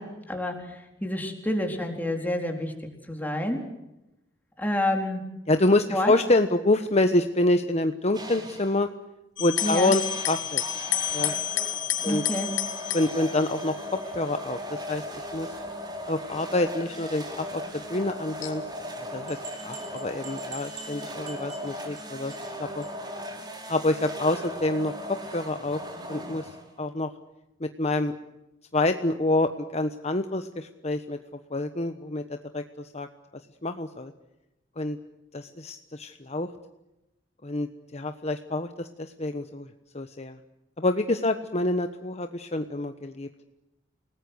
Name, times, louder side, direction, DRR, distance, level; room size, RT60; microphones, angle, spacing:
voice 1, 0.0-2.8 3.1-3.7 4.6-5.2 5.9-6.1 9.6-10.0 12.0-12.6, left 1 dB, 10° left, 3 dB, 4.2 m, -29 dB
voice 2, 5.5-8.9 9.4-10.8 11.1-11.3 12.0-12.2 12.9-13.7 14.1-15.5 16.1-18.6 19.1-22.3 22.6-22.8 23.7-24.9 25.2-25.8 26.1-26.5 26.8-27.1 27.6-28.1 28.7-31.2 31.5-33.1 33.6-34.1 34.8-35.0 35.3-36.5 37.4-39.7 39.9-40.4 40.8-43.3, left 2 dB, 35° left, 8 dB, 1.2 m, -27 dB
sound 1, 8.1-8.8 9.6-26.9, equal, 25° right, 4.9 m, -38 dB
sound 2, 9.4-14.1 14.9-15.4 16.1-16.2 18.4-18.9, left 12 dB, 90° left, 3.2 m, -30 dB
sound 3, 19.3-22.0 22.3-22.5 22.8-22.9 23.2-23.3 23.6-23.7, right 3 dB, 40° right, 6.8 m, -44 dB
29.5 x 19.5 x 8.1 m, 0.94 s
head